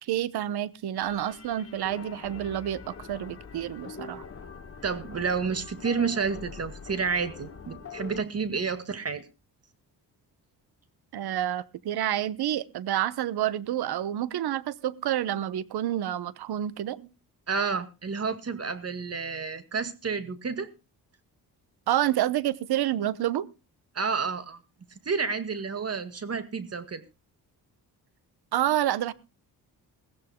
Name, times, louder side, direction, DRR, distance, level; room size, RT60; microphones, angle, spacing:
voice 1, 0.0-4.2 11.1-17.1 21.9-23.5 28.5-29.1, right 12 dB, 70° right, 1.0 m, -28 dB
sound 1, 0.9-8.2, left 6 dB, 35° left, 2.8 m, -43 dB
voice 2, 4.8-9.3 17.5-20.7 23.9-24.6 25.0-27.0, right 5 dB, 35° right, 2.0 m, -30 dB
21.0 x 15.5 x 2.3 m
cardioid pair, 85°, 40 cm